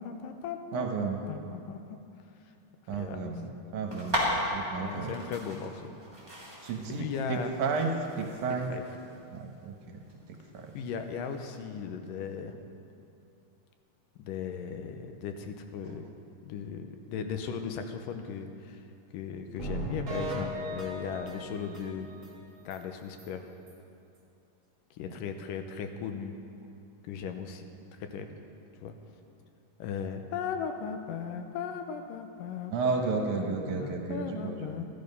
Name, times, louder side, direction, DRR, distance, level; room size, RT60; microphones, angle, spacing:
voice 1, 0.0-1.8 2.9-3.2 4.8-5.9 6.9-7.5 8.7-8.8 10.7-12.6 14.2-16.1 16.4-18.8 19.1-22.1 22.7-23.5 24.9-26.4 27.1-27.6 28.0-28.3 28.8-28.9 29.8-34.8, left 6 dB, 85° left, 6 dB, 2.5 m, -37 dB
voice 2, 0.7-1.2 2.9-4.2 4.5-5.1 6.6-8.7 9.3-10.0 10.3-10.7 15.8-15.9 32.7-34.7, right 4 dB, 70° right, 2 dB, 2.4 m, -33 dB
sound 1, 3.9-11.6, equal, 10° right, 2.5 m, -37 dB
sound 2, 19.6-22.3 22.7-22.8 23.2-23.3 23.7-23.8, right 1 dB, 40° right, 1.2 m, -37 dB
14.5 x 11.5 x 5.4 m, 2.7 s
omnidirectional pair, 3.8 m